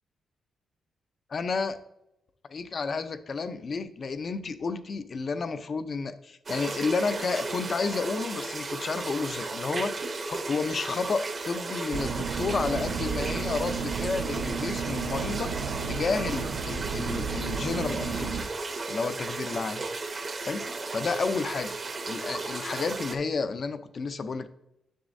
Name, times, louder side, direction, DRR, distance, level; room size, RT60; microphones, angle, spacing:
voice 1, 1.3-1.8 2.5-9.9 10.3-15.5 15.9-18.5 18.9-19.8 20.4-20.6 20.9-21.7 22.1-24.5, left 4 dB, 35° left, 11 dB, 0.5 m, -31 dB
sound 1, 6.5-23.2, right 3 dB, 30° right, 0.7 m, -35 dB
sound 2, 11.9-18.4, right 6 dB, 65° right, 0.5 m, -33 dB
10.0 x 7.1 x 2.6 m, 0.85 s
wide cardioid pair, 170°, 0 cm